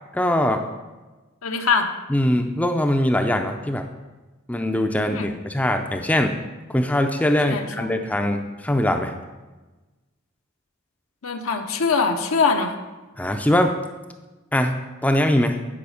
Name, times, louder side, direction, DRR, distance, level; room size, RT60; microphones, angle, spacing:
voice 1, 0.1-0.6 2.1-3.8 4.5-6.4 6.7-9.1 13.2-13.7 14.5-14.8 15.0-15.6, left 1 dB, 5° left, 5 dB, 0.4 m, -21 dB
voice 2, 1.4-1.9 5.1-5.3 7.5-7.9 11.2-12.7, left 5 dB, 85° left, 4 dB, 0.8 m, -22 dB
9.5 x 5.0 x 4.9 m, 1.2 s
head